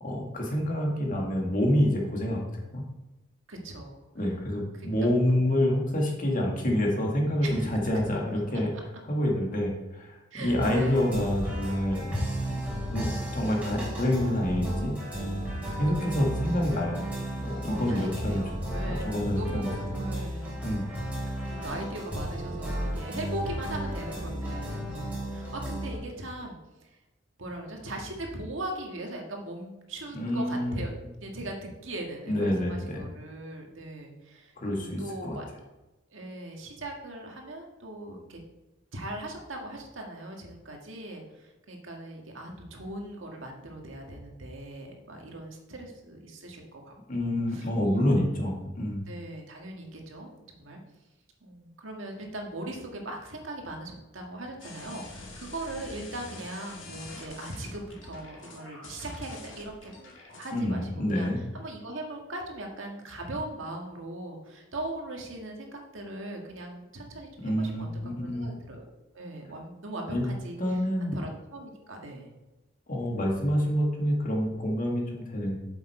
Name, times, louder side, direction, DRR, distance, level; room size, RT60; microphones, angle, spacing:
voice 1, 0.0-2.4 2.7-2.8 4.2-8.7 9.1-12.1 12.5-15.0 15.8-17.1 17.4-18.5 18.9-19.7 20.6-20.9 30.1-30.7 32.3-33.1 34.6-35.4 47.1-49.0 60.5-61.4 67.4-68.5 70.1-70.3 70.6-71.2 72.9-75.6, left 1 dB, 45° left, 0 dB, 1.9 m, -27 dB
voice 2, 3.5-4.0 4.7-4.9 7.4-7.8 10.3-11.0 17.6-19.1 19.4-20.5 21.3-27.0 27.4-30.9 31.2-35.5 36.1-38.4 38.9-46.9 47.2-48.2 49.1-50.3 50.6-50.8 51.4-59.9 60.4-61.3 61.5-67.9 68.2-72.3, right 1 dB, 85° right, 1 dB, 1.7 m, -39 dB
sound 1, 10.4-25.9, equal, 10° right, 3.3 m, -33 dB
sound 2, 54.6-60.6, left 2 dB, 80° left, 2.1 m, -46 dB
7.8 x 7.1 x 4.4 m, 1.0 s
head